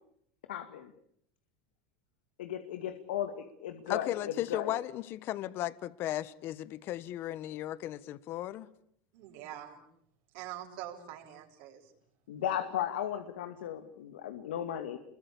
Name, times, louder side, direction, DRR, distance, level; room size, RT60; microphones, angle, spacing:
voice 1, 0.5-0.9 2.4-4.7 12.3-15.0, left 10 dB, 85° left, 2.3 m, -36 dB
voice 2, 3.9-8.7, left 13 dB, 50° left, 1.3 m, -35 dB
voice 3, 9.1-9.8 10.3-11.9, right 12 dB, 65° right, 7.8 m, -44 dB
28.5 x 22.5 x 8.7 m
supercardioid pair, 120°, 5 cm